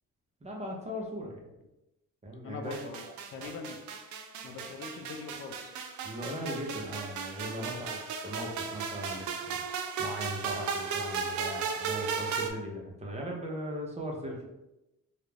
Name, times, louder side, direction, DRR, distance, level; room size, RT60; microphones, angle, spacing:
voice 1, 0.4-1.4 2.2-2.8 3.4-3.6 6.0-8.0 8.2-9.6 10.0-14.5, equal, 20° right, -1 dB, 0.6 m, -38 dB
voice 2, 2.4-3.8 4.4-5.7 7.6-7.9, left 4 dB, 45° left, 4 dB, 0.4 m, -43 dB
sound 1, 2.7-12.5, right 5 dB, 70° right, 0.5 m, -36 dB
2.4 x 2.1 x 3.2 m, 0.94 s
cardioid pair, 90°, 30 cm